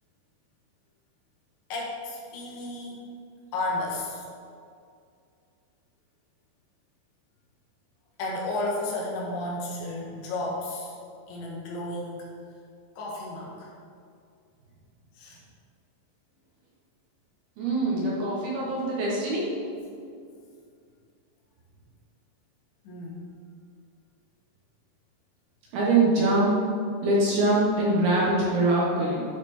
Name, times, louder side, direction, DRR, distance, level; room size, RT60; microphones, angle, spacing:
voice 1, 1.7-3.0 3.5-4.2 8.2-10.9 11.3-12.3 13.0-13.7 15.2-15.4 22.9-23.2, left 2 dB, 75° left, -4 dB, 3.6 m, -32 dB
voice 2, 17.6-19.4 25.7-26.6 27.0-29.3, right 2 dB, 65° right, -5 dB, 2.7 m, -23 dB
11.0 x 4.3 x 4.3 m, 2.3 s
omnidirectional pair, 5.5 m